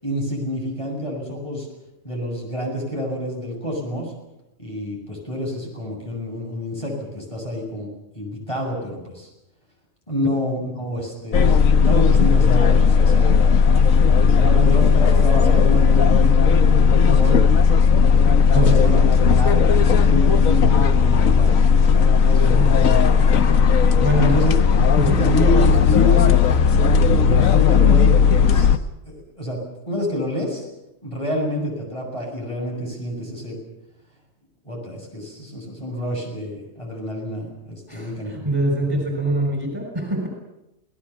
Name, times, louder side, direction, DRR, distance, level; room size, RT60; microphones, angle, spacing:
voice 1, 0.0-1.7 2.0-4.1 4.6-9.3 10.1-13.6 14.2-17.4 18.5-19.1 19.4-19.7 20.0-21.6 22.2-22.9 24.0-24.5 25.0-26.4 26.7-29.6 29.9-30.6 31.0-33.6 34.6-38.4, equal, 20° left, -1 dB, 7.1 m, -28 dB
sound 1, 11.3-28.8, left 6 dB, 75° left, 1.5 m, -15 dB
voice 2, 18.5-19.0 22.6-23.2 24.0-24.4 25.0-25.2 37.9-40.3, right 1 dB, 15° right, 1 dB, 6.4 m, -24 dB
28.0 x 19.0 x 7.2 m, 0.90 s
omnidirectional pair, 1.4 m